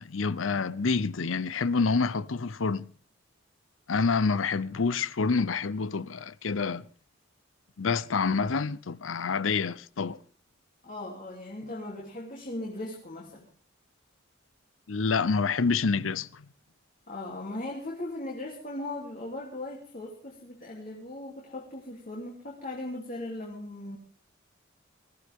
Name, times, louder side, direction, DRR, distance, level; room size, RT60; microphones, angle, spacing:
voice 1, 0.0-2.9 3.9-6.8 7.8-10.2 14.9-16.5, left 4 dB, 85° left, 0.7 m, -27 dB
voice 2, 10.8-13.5 17.1-24.0, left 1 dB, 45° left, 3.2 m, -38 dB
21.5 x 15.0 x 3.6 m
head